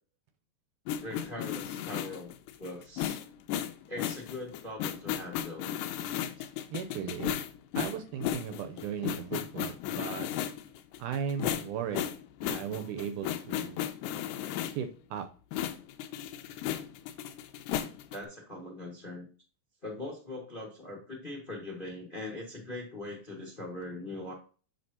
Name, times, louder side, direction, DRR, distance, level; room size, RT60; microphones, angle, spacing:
sound 1, 0.9-14.9 15.5-18.2, left 11 dB, 80° left, 2.1 m, -35 dB
voice 1, 1.0-2.3 2.6-3.2 3.9-5.7 6.4-6.5 18.1-19.3 19.8-24.3, left 2 dB, 25° left, 0 dB, 1.1 m, -41 dB
voice 2, 6.7-7.4 7.7-10.3 11.0-12.1 12.4-13.8 14.7-15.3, right 8 dB, 80° right, 8 dB, 2.0 m, -36 dB
7.8 x 6.3 x 2.8 m, 0.37 s
omnidirectional pair, 3.8 m